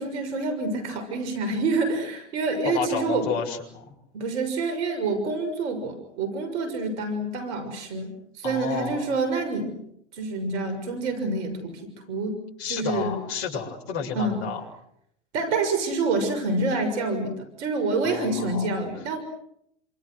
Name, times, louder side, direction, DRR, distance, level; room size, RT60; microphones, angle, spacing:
voice 1, 0.0-3.3 4.1-9.8 10.1-11.8 12.1-12.4 12.7-13.2 14.1-14.4 15.3-19.2, right 3 dB, 75° right, 8 dB, 6.5 m, -27 dB
voice 2, 2.6-3.9 8.4-9.1 12.6-14.6 18.0-18.7, left 7 dB, 55° left, 0 dB, 7.4 m, -31 dB
29.5 x 27.0 x 6.4 m, 0.73 s
hypercardioid pair, 95°, 35 cm